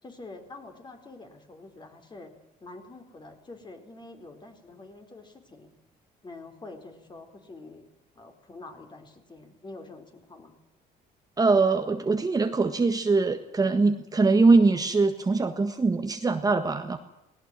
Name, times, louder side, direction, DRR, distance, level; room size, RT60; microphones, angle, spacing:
voice 1, 0.0-2.3 2.6-5.7 6.2-7.9 8.1-10.5, left 2 dB, 25° left, 6 dB, 4.3 m, -46 dB
voice 2, 11.4-17.0, right 3 dB, 20° right, 7 dB, 1.5 m, -22 dB
19.0 x 18.0 x 9.0 m, 0.87 s
cardioid pair, 110°, 17 cm